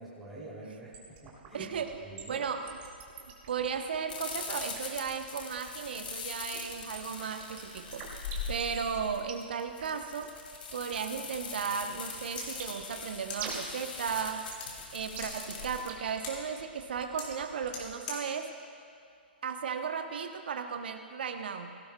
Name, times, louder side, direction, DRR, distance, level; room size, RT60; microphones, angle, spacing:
voice 1, 0.0-1.7 2.0-2.5, right 2 dB, ahead, -10 dB, 3.0 m, -46 dB
sound 1, 0.9-17.9, right 6 dB, 30° right, 2.4 m, -46 dB
voice 2, 1.5-2.0 2.3-2.8 3.5-10.3 10.7-14.5 14.9-18.5 19.4-21.7, right 6 dB, 65° right, 6 dB, 0.8 m, -35 dB
sound 2, 4.1-15.9, left 5 dB, 65° left, 2.1 m, -42 dB
sound 3, 12.3-20.0, left 3 dB, 45° left, 3.7 m, -48 dB
18.5 x 17.0 x 2.2 m, 2.5 s
figure-of-eight pair, 115°, 6 cm